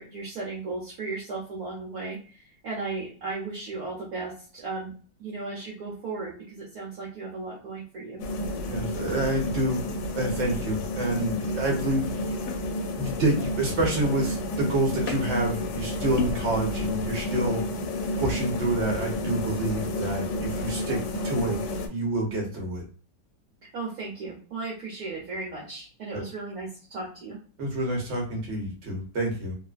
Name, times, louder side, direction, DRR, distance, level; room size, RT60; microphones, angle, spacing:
voice 1, 0.0-4.9 5.2-8.2 23.7-27.4, right 3 dB, 60° right, -5 dB, 1.1 m, -36 dB
sound 1, 8.2-21.9, left 1 dB, 75° left, 1.2 m, -30 dB
voice 2, 8.7-9.8 10.1-12.1 13.0-17.6 18.2-21.6 21.9-22.8 26.1-26.2 27.6-29.5, right 1 dB, 45° right, -1 dB, 1.1 m, -28 dB
3.0 x 2.1 x 2.4 m, 0.40 s
omnidirectional pair, 2.0 m